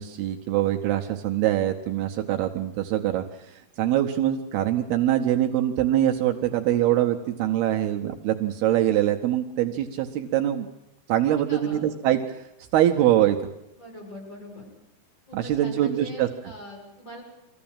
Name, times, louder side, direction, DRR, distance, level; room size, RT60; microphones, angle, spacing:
voice 1, 0.0-10.7 11.1-12.5 12.7-13.4 15.3-16.3, right 12 dB, 75° right, 4 dB, 2.8 m, -23 dB
voice 2, 11.5-11.8 13.8-14.7 15.3-17.2, equal, 25° left, -2 dB, 7.1 m, -41 dB
23.5 x 15.0 x 8.8 m, 0.90 s
omnidirectional pair, 4.8 m